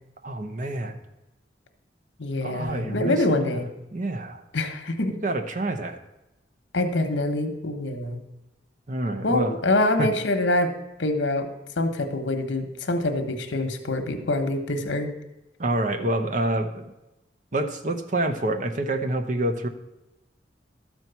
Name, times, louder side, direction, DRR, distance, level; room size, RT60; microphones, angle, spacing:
voice 1, 0.2-1.0 2.4-3.6 3.9-4.4 5.1-6.0 8.9-9.6 10.0-10.1 15.6-16.9 17.5-19.7, right 1 dB, 45° right, 6 dB, 0.8 m, -27 dB
voice 2, 2.2-3.7 4.5-5.1 6.7-8.2 9.2-10.7 11.0-11.5 11.8-15.1, left 2 dB, 85° left, 6 dB, 1.1 m, -25 dB
12.5 x 4.5 x 6.9 m, 0.98 s
head